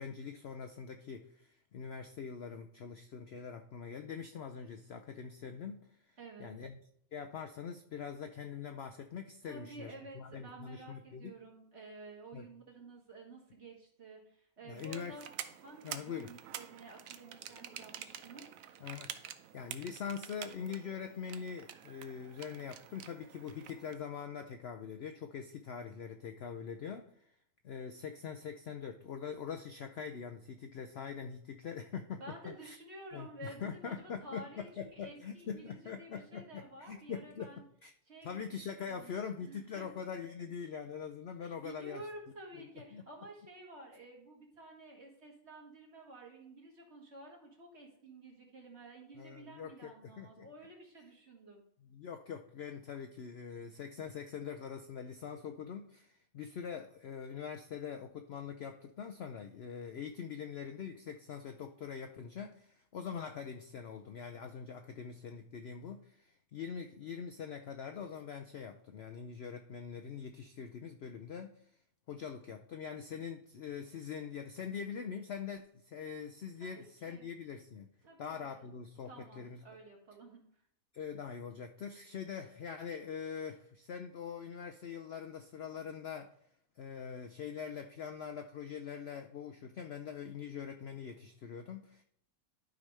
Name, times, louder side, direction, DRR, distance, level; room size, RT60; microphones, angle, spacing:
voice 1, 0.0-6.8 7.1-11.3 12.3-12.5 14.7-15.2 15.8-16.3 18.8-19.1 19.5-27.1 27.6-32.8 33.1-37.5 37.8-37.9 38.2-42.0 42.9-43.0 49.2-50.5 51.9-71.6 72.1-77.9 78.2-79.6 80.9-86.3 86.8-92.0, left 7 dB, 65° left, 6 dB, 0.6 m, -43 dB
voice 2, 6.2-6.5 9.5-15.3 15.6-18.5 32.2-37.6 38.1-39.1 39.4-39.9 41.4-51.6 76.6-77.3 78.0-78.7 79.0-80.4, right 2 dB, 45° right, 0 dB, 2.0 m, -51 dB
sound 1, 14.8-23.9, right 9 dB, 70° right, 1.0 m, -48 dB
12.0 x 5.0 x 3.3 m, 0.71 s
omnidirectional pair, 1.6 m